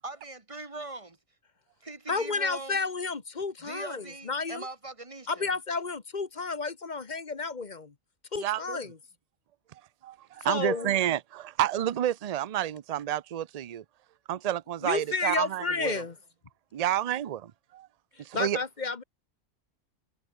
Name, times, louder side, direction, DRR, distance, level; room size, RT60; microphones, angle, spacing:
voice 1, 0.0-1.2 1.8-2.8 3.6-5.5, right 2 dB, 25° right, 1.7 m, -41 dB
voice 2, 2.1-4.7 5.3-7.9 8.3-9.0 10.4-10.9 14.8-16.2 18.3-19.0, left 4 dB, 35° left, 1.2 m, -31 dB
voice 3, 8.4-8.8 10.0-13.8 14.3-15.9 16.7-17.9 18.2-18.6, right 11 dB, 60° right, 0.4 m, -30 dB
omnidirectional pair, 1.4 m